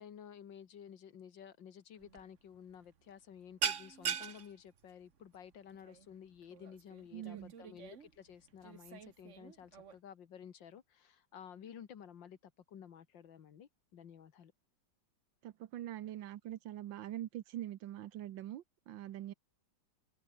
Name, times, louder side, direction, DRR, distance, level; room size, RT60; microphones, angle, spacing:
voice 1, 0.0-14.5, left 8 dB, 75° left, 2.2 m, -53 dB
sound 1, 2.0-2.3 2.5-2.8 3.1-10.0, right 7 dB, 45° right, 1.3 m, -42 dB
voice 2, 7.1-7.5 15.4-19.3, right 12 dB, 80° right, 1.6 m, -44 dB
omnidirectional pair, 2.0 m